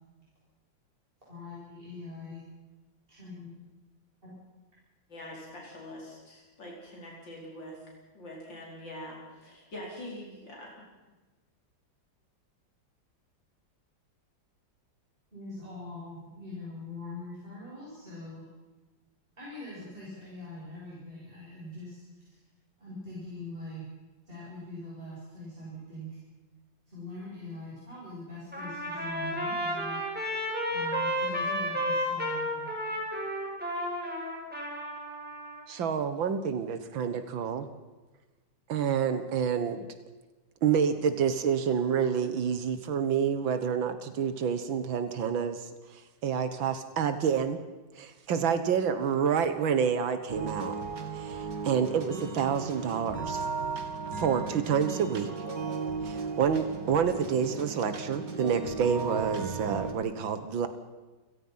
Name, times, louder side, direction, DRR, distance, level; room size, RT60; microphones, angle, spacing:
voice 1, 1.3-2.4 3.1-3.5 4.2-4.4 15.3-18.5 19.4-22.4 22.8-23.8 24.3-26.1 26.9-30.0 30.7-32.8, left 2 dB, 25° right, -7 dB, 7.8 m, -43 dB
voice 2, 5.1-7.8 8.1-10.7, left 1 dB, 70° left, -2 dB, 5.3 m, -44 dB
Trumpet, 28.5-35.6, equal, 5° right, 5.8 m, -32 dB
voice 3, 35.7-37.7 38.7-39.9 40.6-47.6 48.0-50.8 51.1-53.4 54.2-55.3 56.0-60.7, right 7 dB, 90° right, 10 dB, 2.1 m, -28 dB
sound 1, 50.3-59.9, right 4 dB, 65° right, 3.0 m, -35 dB
29.5 x 17.0 x 5.7 m, 1.2 s
omnidirectional pair, 2.1 m